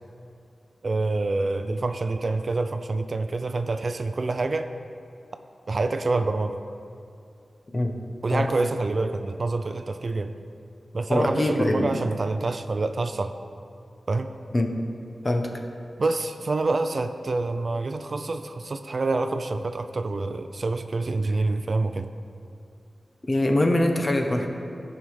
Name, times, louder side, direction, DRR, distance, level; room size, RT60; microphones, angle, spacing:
voice 1, 0.8-4.7 5.7-6.6 8.2-10.3 10.9-13.3 14.1-14.3 16.0-22.1, right 3 dB, 55° right, 8 dB, 0.5 m, -27 dB
voice 2, 11.1-12.0 14.5-14.7 15.2-15.6 23.2-24.5, left 1 dB, 35° left, 3 dB, 1.0 m, -23 dB
14.5 x 5.4 x 4.9 m, 2.5 s
wide cardioid pair, 80°, 0 cm